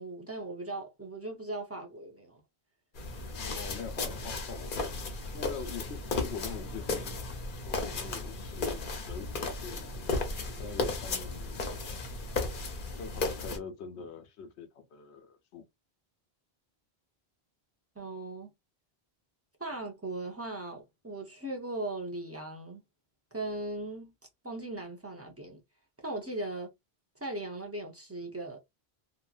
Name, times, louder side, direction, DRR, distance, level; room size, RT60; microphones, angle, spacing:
voice 1, 0.0-2.4 18.0-18.5 19.6-22.8 23.3-24.1 24.4-25.6 26.0-26.7 27.2-28.6, right 2 dB, 15° right, 0.6 m, -38 dB
sound 1, 3.0-13.6, left 3 dB, 55° left, 0.9 m, -35 dB
voice 2, 3.4-4.9 5.3-7.2 7.7-10.3 10.6-11.6 13.0-15.7, left 5 dB, 90° left, 1.0 m, -43 dB
2.9 x 2.4 x 2.4 m
omnidirectional pair, 1.1 m